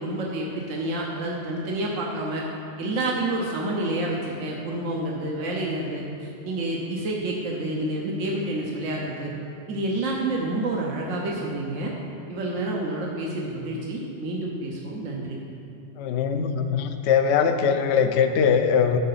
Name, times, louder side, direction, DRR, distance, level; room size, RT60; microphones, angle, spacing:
voice 1, 0.0-2.4 2.8-9.3 9.7-11.9 12.3-15.4, right 2 dB, 75° right, -2 dB, 1.3 m, -29 dB
voice 2, 16.0-19.0, left 7 dB, 65° left, 7 dB, 0.8 m, -21 dB
12.0 x 6.5 x 4.1 m, 2.6 s
omnidirectional pair, 1.3 m